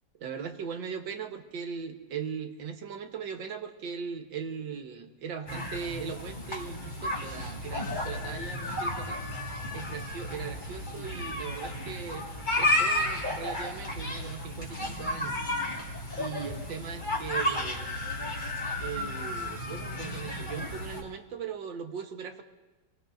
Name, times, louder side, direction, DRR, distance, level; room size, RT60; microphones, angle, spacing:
voice 1, 0.2-9.2 9.7-15.3 16.2-17.9 18.8-22.4, right 6 dB, 75° right, 5 dB, 1.9 m, -39 dB
sound 1, 5.5-21.0, left 1 dB, 25° left, 2.0 m, -33 dB
26.5 x 18.0 x 2.6 m, 1.2 s
omnidirectional pair, 2.0 m